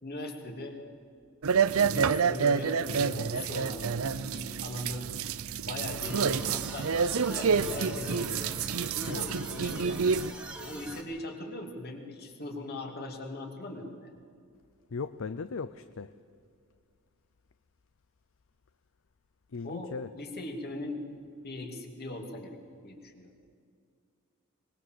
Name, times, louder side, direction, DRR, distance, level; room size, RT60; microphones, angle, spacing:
voice 1, 0.0-0.8 1.8-3.8 4.1-5.1 5.7-8.4 8.9-10.0 10.6-14.1 19.6-21.1 21.4-22.6 22.8-23.3, left 1 dB, 45° left, 3 dB, 2.7 m, -39 dB
sound 1, 1.4-10.3, right 6 dB, 70° right, 0.6 m, -28 dB
sound 2, 6.0-11.0, right 1 dB, 5° right, 1.9 m, -43 dB
voice 2, 14.9-16.1 19.5-20.1, left 4 dB, 65° left, 12 dB, 0.6 m, -37 dB
23.5 x 21.0 x 7.8 m, 2.3 s
head